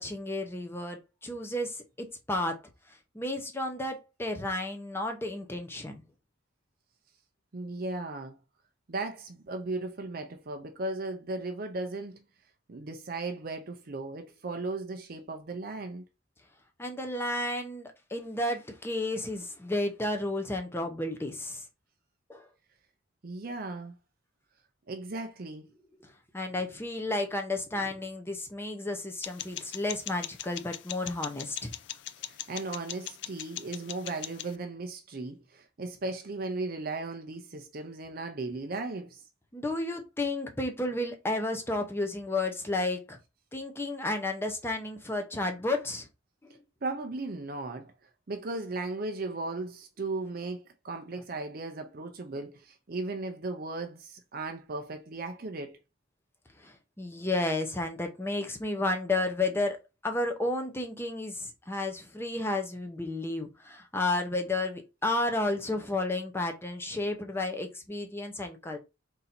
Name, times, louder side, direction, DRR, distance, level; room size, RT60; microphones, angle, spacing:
voice 1, 0.0-2.6 2.9-6.0 16.8-21.6 22.3-22.5 26.0-31.7 39.5-43.2 43.5-46.1 46.4-46.6 56.6-68.8, left 2 dB, 10° left, 0.7 m, -32 dB
voice 2, 7.5-8.4 8.9-12.2 12.7-16.0 23.2-23.9 24.9-25.7 32.2-39.2 46.8-47.9 48.3-55.8, right 2 dB, 50° right, 0.5 m, -36 dB
sound 1, 29.2-34.5, left 12 dB, 60° left, 0.4 m, -41 dB
3.9 x 2.7 x 4.2 m
head